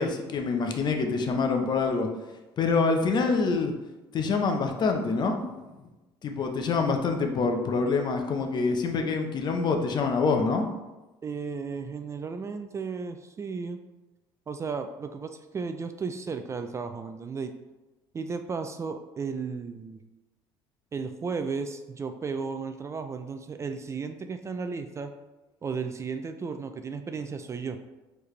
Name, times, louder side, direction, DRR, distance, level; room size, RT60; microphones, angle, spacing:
voice 1, 0.0-2.1 2.6-3.7 4.1-5.4 6.2-10.7, left 4 dB, 45° left, 5 dB, 0.7 m, -26 dB
voice 2, 11.2-13.8 14.5-17.5 18.1-20.0 20.9-25.1 25.6-27.8, right 5 dB, 25° right, 8 dB, 0.3 m, -34 dB
4.6 x 3.3 x 3.1 m, 1.1 s
supercardioid pair, 90°, 11 cm